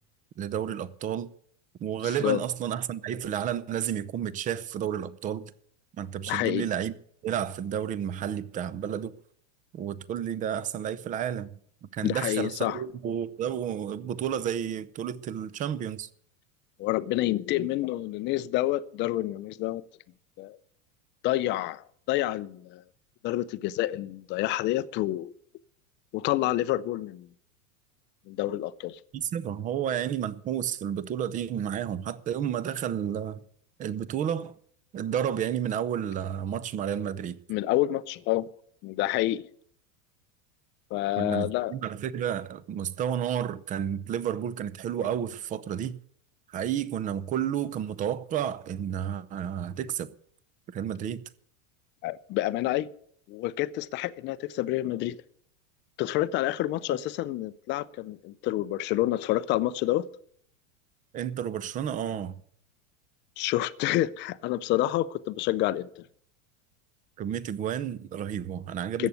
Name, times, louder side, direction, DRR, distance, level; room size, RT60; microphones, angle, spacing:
voice 1, 0.4-1.3 1.8-5.5 6.0-6.9 7.2-9.1 9.7-11.6 11.9-16.1 29.1-33.4 33.8-34.5 34.9-37.4 41.2-46.0 46.5-50.1 50.7-51.2 61.1-62.4 67.2-69.1, right 9 dB, 20° right, 0.5 m, -31 dB
voice 2, 2.0-2.4 6.3-6.7 12.0-12.8 16.8-19.8 20.4-20.6 21.2-22.8 23.2-25.3 26.1-27.3 28.3-29.0 37.5-38.5 38.8-39.5 40.9-41.7 52.0-52.9 53.3-55.2 56.0-60.1 63.4-66.0 69.0-69.1, left 15 dB, 30° left, 0.5 m, -28 dB
14.0 x 8.3 x 9.2 m
supercardioid pair, 145°, 40 cm